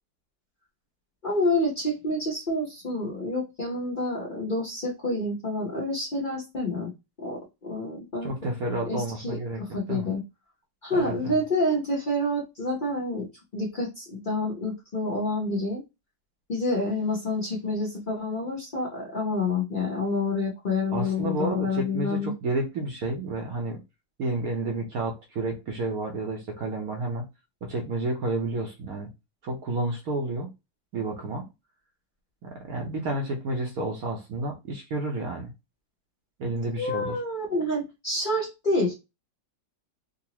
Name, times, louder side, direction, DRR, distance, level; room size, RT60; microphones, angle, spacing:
voice 1, 1.2-6.9 7.2-8.3 8.8-10.2 10.8-13.3 13.5-15.8 16.5-22.3 36.8-38.9, left 2 dB, 35° left, 0.8 m, -28 dB
voice 2, 8.2-9.6 9.9-10.1 10.9-11.4 20.9-23.8 24.2-27.2 27.6-29.1 29.4-30.5 30.9-31.5 32.4-35.5 36.4-37.2, right 2 dB, 60° right, 1.1 m, -30 dB
3.8 x 2.3 x 2.9 m
omnidirectional pair, 1.9 m